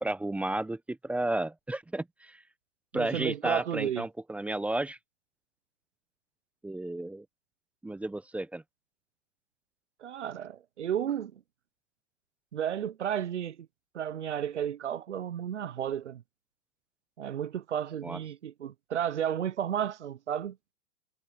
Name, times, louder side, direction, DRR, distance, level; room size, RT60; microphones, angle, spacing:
voice 1, 0.0-2.4 2.9-5.0 6.6-7.3 7.8-8.6 18.0-18.2, right 2 dB, 5° right, 0.8 m, -32 dB
voice 2, 2.9-4.0 10.0-11.4 12.5-13.7 13.9-16.2 17.2-20.6, right 9 dB, 85° right, 0.9 m, -33 dB
hypercardioid pair, 125°, 34 cm